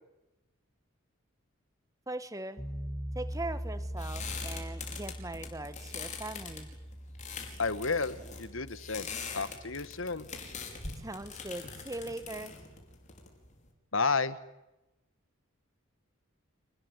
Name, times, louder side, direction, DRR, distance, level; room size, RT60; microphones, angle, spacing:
voice 1, 2.1-2.6 3.2-6.7 11.0-12.6, right 2 dB, 15° right, 12 dB, 1.6 m, -40 dB
sound 1, 2.6-13.5, equal, 20° left, 7.7 m, -43 dB
sound 2, 3.3-13.7, left 5 dB, 35° left, 5.3 m, -43 dB
voice 2, 7.6-10.3 13.9-14.4, left 4 dB, 65° left, 14 dB, 1.6 m, -32 dB
28.5 x 20.0 x 9.6 m, 0.97 s
head